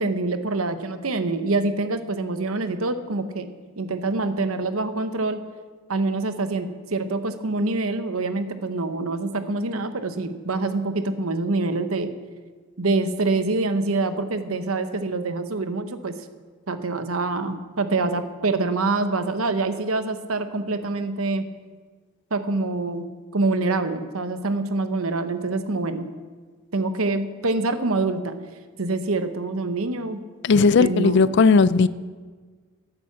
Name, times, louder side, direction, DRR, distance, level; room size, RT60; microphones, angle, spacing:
voice 1, 0.0-3.5 3.8-5.4 5.9-12.1 12.8-16.2 16.7-21.5 22.3-23.1 23.3-26.1 26.7-28.4 28.8-30.2 30.8-31.4, right 3 dB, 85° right, 10 dB, 1.0 m, -25 dB
voice 2, 30.4-31.9, left 4 dB, 55° left, 17 dB, 0.4 m, -16 dB
10.5 x 9.2 x 7.2 m, 1.5 s
head